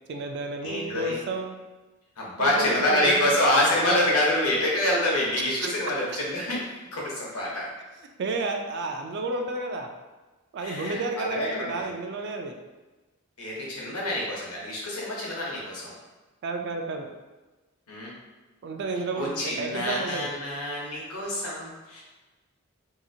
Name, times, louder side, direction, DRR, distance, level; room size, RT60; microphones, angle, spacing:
voice 1, 0.1-1.5 2.4-3.3 8.2-9.9 10.5-12.6 16.4-17.1 18.6-20.3, right 2 dB, 50° right, 4 dB, 0.3 m, -31 dB
voice 2, 0.6-1.2 2.2-7.7 10.6-11.9 13.4-15.9 17.9-18.1 19.1-22.0, left 1 dB, 85° left, -4 dB, 0.9 m, -26 dB
2.8 x 2.4 x 2.6 m, 1.2 s
head